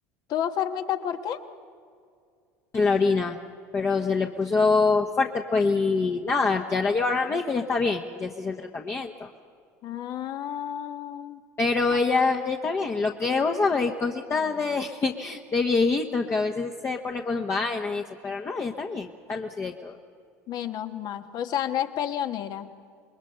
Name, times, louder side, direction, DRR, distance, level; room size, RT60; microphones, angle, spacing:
voice 1, 0.3-1.4 9.8-11.4 11.9-12.0 20.5-22.7, left 10 dB, 55° left, 8 dB, 1.4 m, -30 dB
voice 2, 2.7-3.4 3.7-9.3 11.6-20.0, left 4 dB, 30° left, 1 dB, 1.3 m, -25 dB
27.0 x 21.5 x 5.8 m, 2.2 s
hypercardioid pair, 80°, 8 cm